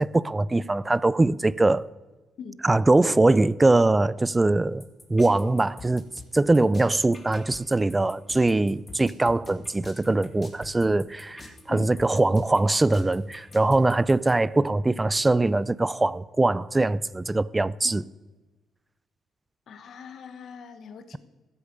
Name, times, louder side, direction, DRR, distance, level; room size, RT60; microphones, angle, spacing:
voice 1, 0.0-1.9 2.6-4.8 5.1-6.1 6.3-18.0, right 2 dB, 15° right, 0.4 m, -22 dB
sound 1, 4.8-14.3, left 2 dB, 25° left, 2.2 m, -46 dB
voice 2, 19.7-21.2, left 6 dB, 65° left, 1.3 m, -41 dB
14.5 x 8.5 x 6.7 m
cardioid pair, 90°, 0 cm